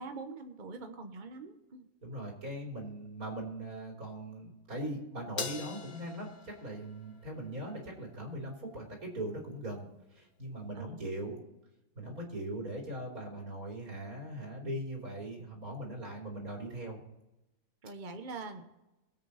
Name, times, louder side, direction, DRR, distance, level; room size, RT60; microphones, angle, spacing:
voice 1, 0.0-1.9 10.7-11.2 17.8-18.7, right 3 dB, 35° right, 6 dB, 1.3 m, -44 dB
voice 2, 2.0-11.4 12.0-17.0, right 1 dB, 85° right, -1 dB, 3.7 m, -40 dB
Crash cymbal, 5.4-7.9, left 4 dB, 35° left, 0.9 m, -42 dB
22.0 x 8.2 x 4.2 m, 0.97 s
omnidirectional pair, 1.5 m